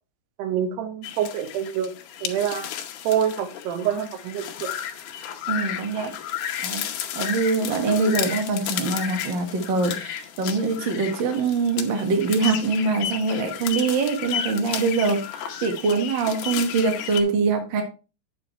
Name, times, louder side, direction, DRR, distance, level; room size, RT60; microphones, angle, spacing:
voice 1, 0.4-1.9 2.2-2.7 3.0-4.7, right 9 dB, 85° right, 8 dB, 3.2 m, -26 dB
sound 1, 1.0-17.2, left 10 dB, 80° left, 2.8 m, -33 dB
voice 2, 5.5-6.2 6.6-6.8 7.1-17.8, right 4 dB, 45° right, 4 dB, 1.5 m, -24 dB
8.8 x 7.7 x 3.2 m, 0.31 s
omnidirectional pair, 4.6 m